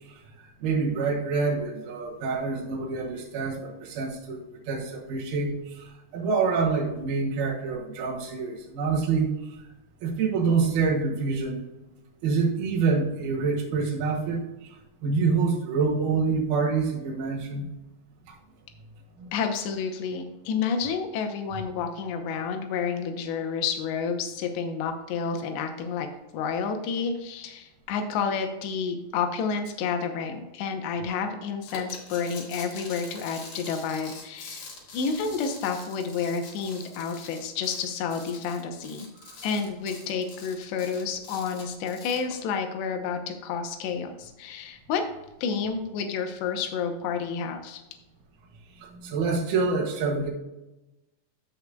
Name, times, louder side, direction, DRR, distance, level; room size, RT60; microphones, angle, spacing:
voice 1, 0.6-4.4 4.7-9.3 10.0-11.6 12.2-14.8 15.0-17.7 19.2-19.3 48.8-50.3, right 4 dB, 65° right, -3 dB, 3.5 m, -26 dB
voice 2, 19.3-26.1 26.3-39.1 39.4-45.0 45.4-47.8, left 6 dB, 80° left, 5 dB, 3.1 m, -30 dB
sound 1, 31.7-42.3, left 4 dB, 50° left, 2.5 m, -44 dB
15.0 x 5.5 x 2.3 m, 1.0 s
omnidirectional pair, 5.0 m